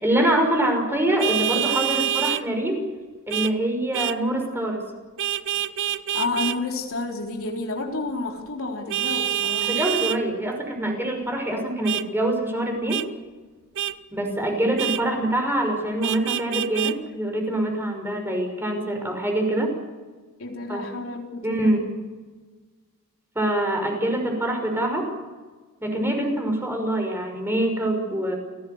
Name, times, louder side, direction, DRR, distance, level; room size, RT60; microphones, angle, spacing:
voice 1, 0.0-2.9 3.3-4.8 9.6-13.0 14.1-19.7 20.7-20.9 21.4-21.8 23.3-25.0 25.8-28.4, right 1 dB, 10° right, 2 dB, 5.8 m, -24 dB
Vehicle horn car horn honking, 1.2-2.4 3.3-3.5 3.9-4.2 5.2-6.6 8.9-10.2 11.8-12.0 12.9-13.1 13.7-13.9 14.8-15.0 16.0-16.9, right 11 dB, 60° right, 0.9 m, -26 dB
voice 2, 6.1-9.7 20.4-21.9, left 3 dB, 70° left, 1 dB, 3.9 m, -30 dB
29.5 x 18.0 x 8.0 m, 1.4 s
head